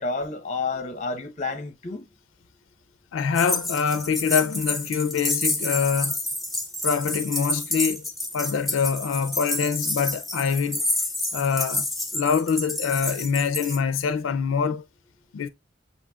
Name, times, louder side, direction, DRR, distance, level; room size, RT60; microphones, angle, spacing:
voice 1, 0.0-2.1, left 3 dB, 35° left, 0.8 m, -30 dB
voice 2, 3.1-6.2 6.8-8.0 8.3-10.9 11.3-11.9 12.1-14.8 15.3-15.5, left 6 dB, 85° left, 0.4 m, -25 dB
sound 1, 3.3-13.8, left 2 dB, ahead, 0.7 m, -29 dB
8.2 x 2.8 x 2.3 m
head